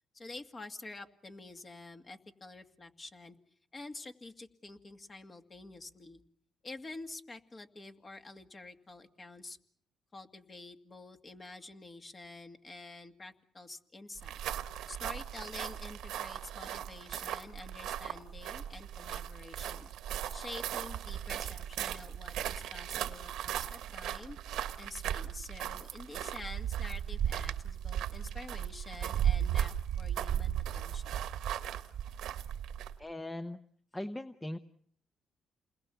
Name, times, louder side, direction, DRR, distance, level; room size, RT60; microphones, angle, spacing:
voice 1, 0.1-3.4 3.7-6.2 6.6-9.6 10.1-14.4 14.9-19.9 20.3-24.4 24.8-31.2, left 2 dB, 30° left, 6 dB, 2.2 m, -48 dB
sound 1, 14.2-33.0, right 10 dB, 85° right, 1.4 m, -36 dB
voice 2, 33.0-33.6 33.9-34.6, left 1 dB, 15° left, 9 dB, 1.0 m, -39 dB
29.0 x 21.0 x 7.1 m, 0.63 s
cardioid pair, 90°, 0 cm